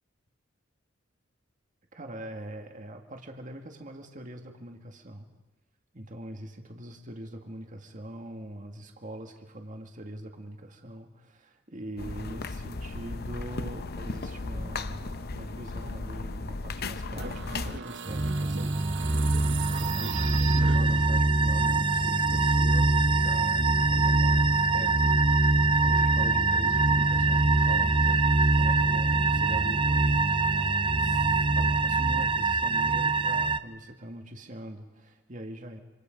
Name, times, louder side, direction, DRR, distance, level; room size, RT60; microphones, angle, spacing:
voice 1, 1.9-5.3 5.9-19.3 19.8-30.2 31.0-35.8, right 1 dB, 40° right, 4 dB, 2.1 m, -42 dB
sound 1, 12.0-17.8, left 3 dB, 55° left, 0.8 m, -36 dB
sound 2, 17.1-21.4, right 6 dB, 65° right, 1.2 m, -38 dB
sound 3, 18.1-33.6, right 3 dB, 25° right, 0.7 m, -23 dB
26.5 x 26.5 x 5.3 m, 1.2 s
head